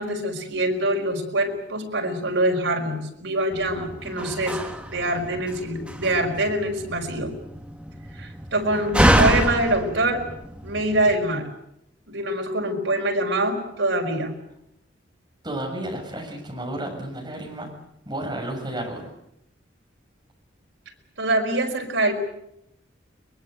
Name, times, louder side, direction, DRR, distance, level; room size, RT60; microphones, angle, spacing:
voice 1, 0.0-7.3 8.1-10.3 10.6-11.5 12.1-14.3 21.2-22.1, right 1 dB, 80° right, 2 dB, 5.3 m, -24 dB
Slam, 3.5-11.1, equal, 5° right, 1.9 m, -26 dB
voice 2, 15.4-17.7 18.1-19.1, right 1 dB, 20° right, 0 dB, 7.1 m, -32 dB
23.0 x 22.0 x 8.2 m, 0.79 s
head